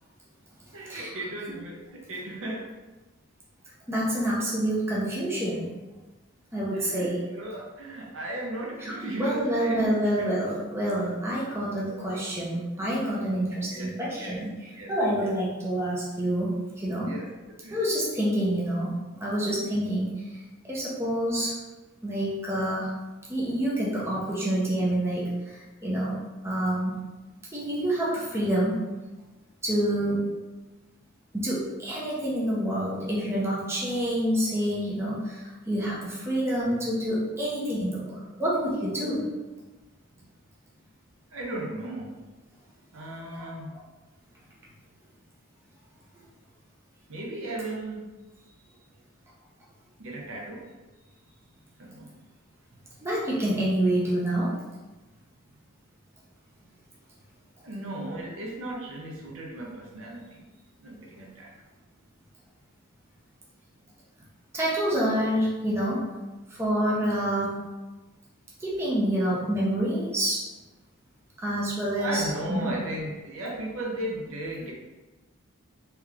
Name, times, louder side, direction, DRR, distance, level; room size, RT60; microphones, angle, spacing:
voice 1, 0.7-2.7 6.7-10.3 11.9-12.0 13.1-13.2 13.7-14.4 14.7-14.9 17.1-17.3 17.6-17.8 19.7-19.8 30.0-30.1 41.3-42.2 42.9-43.7 47.1-48.1 50.0-50.7 51.8-52.1 57.6-60.4 60.8-61.5 72.0-74.7, right 1 dB, 70° right, -1 dB, 0.5 m, -36 dB
voice 2, 3.9-5.7 6.5-7.2 8.8-8.9 9.2-14.5 14.9-17.1 17.7-20.4 20.7-21.6 22.0-22.9 23.3-26.9 27.5-28.8 29.6-30.3 31.3-39.2 53.0-54.5 64.5-66.1 66.5-67.6 68.6-70.4 71.4-72.7, right 1 dB, 10° right, -6 dB, 0.6 m, -27 dB
3.6 x 2.8 x 2.4 m, 1.2 s
head